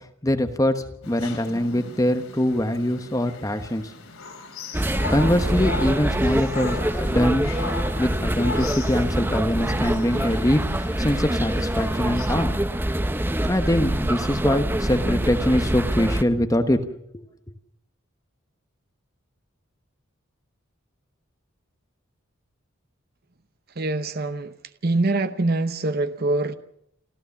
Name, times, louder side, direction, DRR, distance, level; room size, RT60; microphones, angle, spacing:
voice 1, 0.2-3.9 5.1-7.5 8.0-12.5 13.4-16.8 17.1-17.2, left 1 dB, 15° left, 1.1 m, -23 dB
sound 1, 1.0-12.3, left 4 dB, 80° left, 4.0 m, -38 dB
sound 2, 4.7-16.2, right 1 dB, 10° right, 0.7 m, -25 dB
voice 2, 23.8-24.5 24.8-26.6, right 2 dB, 45° right, 0.8 m, -24 dB
28.0 x 14.0 x 7.1 m
head